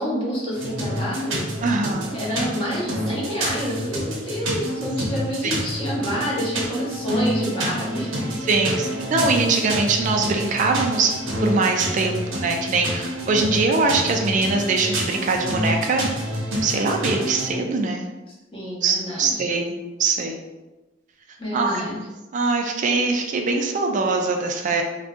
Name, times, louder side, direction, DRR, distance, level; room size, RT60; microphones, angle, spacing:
voice 1, 0.0-1.5 2.1-8.2 8.6-8.8 18.5-19.5 21.4-22.1, equal, 30° left, -6 dB, 0.9 m, -28 dB
sound 1, 0.5-17.5, equal, 85° right, 0.7 m, -28 dB
voice 2, 1.6-2.2 5.4-5.5 8.5-11.1 11.4-16.1 16.6-18.1 18.8-20.4 21.5-21.8 22.3-24.8, right 3 dB, 40° right, 3 dB, 0.3 m, -22 dB
2.6 x 2.2 x 3.6 m, 1.1 s
head